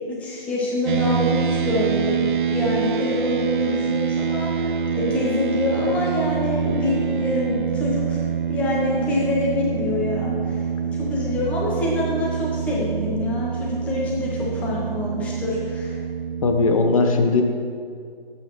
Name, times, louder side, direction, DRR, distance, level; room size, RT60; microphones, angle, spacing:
voice 1, 0.1-2.2 2.5-8.2 8.5-16.0, left 2 dB, 5° left, -4 dB, 0.7 m, -26 dB
sound 1, 0.8-16.7, right 7 dB, 55° right, 0.4 m, -25 dB
voice 2, 16.4-17.4, left 3 dB, 35° left, 5 dB, 0.9 m, -18 dB
12.0 x 8.0 x 3.1 m, 2.3 s
figure-of-eight pair, 150°, 30 cm